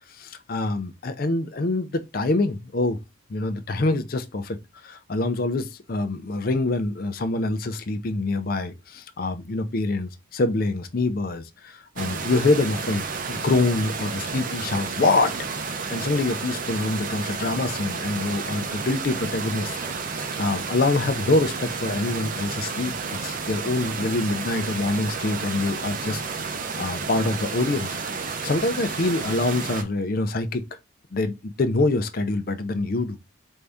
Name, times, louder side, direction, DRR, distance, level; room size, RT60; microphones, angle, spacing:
voice 1, 0.2-3.0 3.3-4.6 4.8-19.7 20.4-26.2 26.8-30.6 31.1-33.2, left 2 dB, 45° left, 0.5 m, -25 dB
sound 1, 12.0-29.8, right 5 dB, 40° right, 0.5 m, -31 dB
4.5 x 2.6 x 3.4 m
head